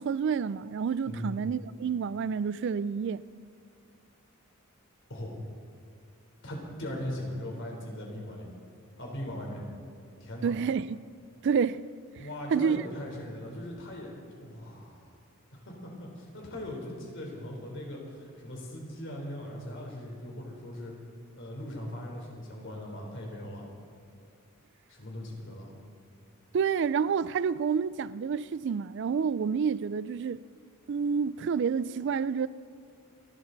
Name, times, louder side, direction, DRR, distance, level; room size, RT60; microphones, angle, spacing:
voice 1, 0.0-3.2 10.4-11.0 11.4-11.8 12.2-12.8 26.5-30.4 30.9-32.5, right 6 dB, 55° right, 0.3 m, -29 dB
voice 2, 1.0-1.5 5.1-5.3 6.4-8.5 9.0-9.6 10.2-10.5 12.1-15.1 15.6-20.9 21.3-23.7 24.9-25.7, left 1 dB, 55° left, 3.8 m, -39 dB
29.0 x 12.5 x 4.0 m
head